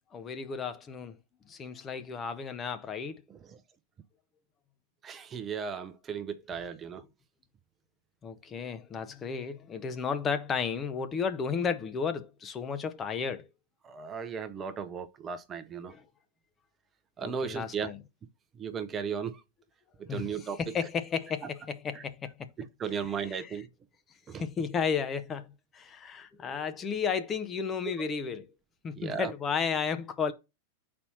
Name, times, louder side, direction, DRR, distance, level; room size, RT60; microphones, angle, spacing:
voice 1, 0.1-1.2 1.5-3.2 8.2-13.5 15.8-16.1 17.2-18.0 20.1-22.5 22.9-23.6 24.4-28.5 28.8-30.3, left 6 dB, 25° left, 0.7 m, -33 dB
voice 2, 5.0-7.0 13.8-15.9 17.2-17.9 18.6-19.4 20.1-20.6 22.8-23.7 24.3-24.4 29.0-29.3, right 6 dB, 25° right, 0.7 m, -35 dB
4.3 x 4.2 x 5.6 m
figure-of-eight pair, 90°, 0 cm